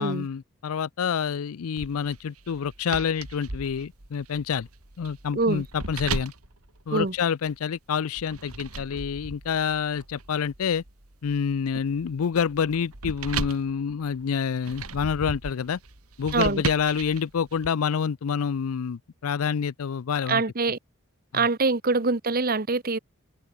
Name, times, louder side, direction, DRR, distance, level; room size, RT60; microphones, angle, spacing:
voice 1, 0.0-4.7 5.0-6.3 6.9-10.8 11.2-15.8 16.2-20.4 21.3-21.4, left 7 dB, 80° left, 0.4 m, -27 dB
sound 1, 1.8-7.6 8.2-17.7, right 3 dB, 90° right, 3.2 m, -37 dB
voice 2, 16.3-16.6 20.3-20.8 21.3-23.0, right 3 dB, 40° right, 1.1 m, -24 dB
head